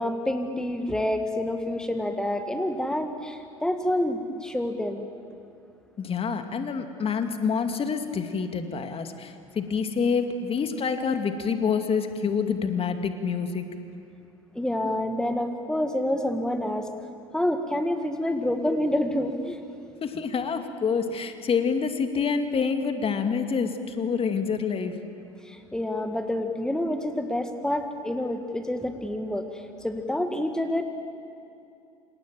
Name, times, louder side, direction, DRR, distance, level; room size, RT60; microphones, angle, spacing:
voice 1, 0.0-5.1 14.5-16.9 17.3-19.6 25.4-30.8, left 1 dB, 5° left, 6 dB, 2.0 m, -28 dB
voice 2, 6.0-13.6 20.0-25.0, left 6 dB, 30° left, 7 dB, 2.2 m, -27 dB
28.0 x 27.5 x 7.7 m, 2.7 s
figure-of-eight pair, 70°, 18 cm